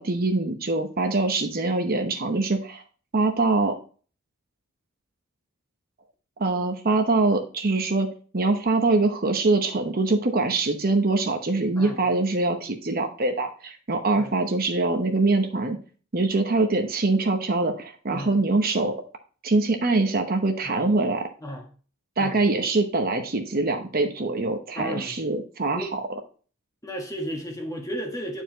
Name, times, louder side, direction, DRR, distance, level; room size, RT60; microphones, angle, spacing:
voice 1, 0.0-2.8 3.1-3.8 6.4-8.1 8.3-15.8 16.1-19.0 19.4-21.3 22.2-26.0, right 3 dB, 45° right, 0.9 m, -23 dB
voice 2, 24.7-25.2 25.7-25.9 26.8-28.4, equal, 15° left, 1.4 m, -34 dB
9.8 x 4.6 x 2.9 m
head